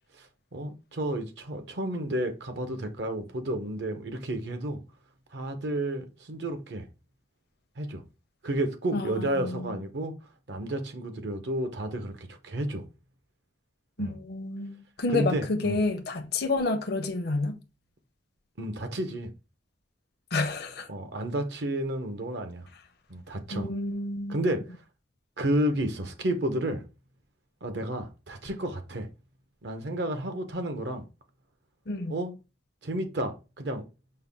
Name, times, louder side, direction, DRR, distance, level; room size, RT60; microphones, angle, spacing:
voice 1, 0.5-4.8 5.3-6.8 7.8-8.0 8.4-10.2 10.5-12.8 14.0-14.2 15.1-15.8 18.6-19.3 20.9-22.7 23.1-23.7 24.3-24.6 25.4-26.8 27.6-29.1 29.6-31.0 32.1-32.4 32.8-33.8, right 1 dB, 60° right, 0.7 m, -31 dB
voice 2, 8.9-9.8 14.0-17.6 20.3-20.9 23.5-24.4 31.9-32.2, left 2 dB, 60° left, 0.6 m, -29 dB
5.5 x 2.2 x 3.4 m
head